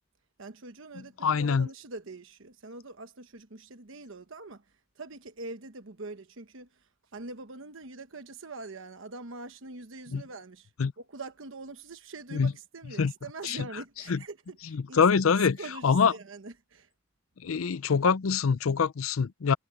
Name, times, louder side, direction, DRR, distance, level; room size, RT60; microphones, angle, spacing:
voice 1, 0.4-10.7 11.0-16.9, right 3 dB, 65° right, 1.1 m, -44 dB
voice 2, 1.2-1.7 10.1-10.2 10.8-10.9 12.3-12.5 13.0-13.1 13.5-13.6 14.1-14.2 15.0-15.6 15.8-16.1 17.4-19.5, left 5 dB, 90° left, 0.5 m, -24 dB
head